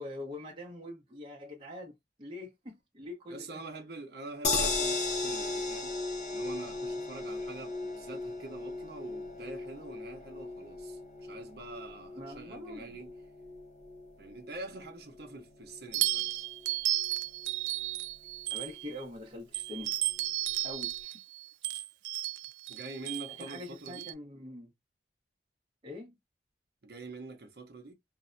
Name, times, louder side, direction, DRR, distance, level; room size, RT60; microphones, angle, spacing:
voice 1, 0.0-3.6 12.2-13.0 18.5-19.9 20.6-21.2 23.3-24.7 25.8-26.2, left 1 dB, 30° right, 0.7 m, -44 dB
voice 2, 3.3-6.0 6.3-13.1 14.2-16.3 22.7-24.1 26.8-27.9, right 2 dB, 60° right, 0.7 m, -45 dB
sound 1, 4.4-16.7 17.1-17.2 17.4-17.5, left 3 dB, 40° left, 0.6 m, -37 dB
sound 2, 15.9-19.0 19.5-24.1, right 15 dB, 85° right, 0.3 m, -34 dB
2.6 x 2.1 x 2.4 m
head